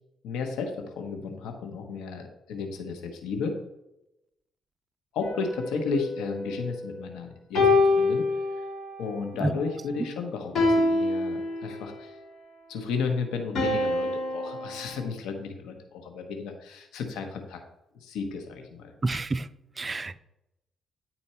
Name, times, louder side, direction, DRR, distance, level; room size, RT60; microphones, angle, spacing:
voice 1, 0.2-3.6 5.1-8.2 9.0-12.1 12.7-17.6 18.0-18.9, left 5 dB, 85° left, 4 dB, 1.0 m, -33 dB
sound 1, 5.2-7.0 7.5-9.0 10.5-12.0 13.5-15.0, left 2 dB, 55° left, 3.2 m, -26 dB
voice 2, 19.0-19.5 19.8-20.2, right 2 dB, 25° right, 12 dB, 0.4 m, -28 dB
9.9 x 4.3 x 4.3 m, 0.89 s
cardioid pair, 90°, 0 cm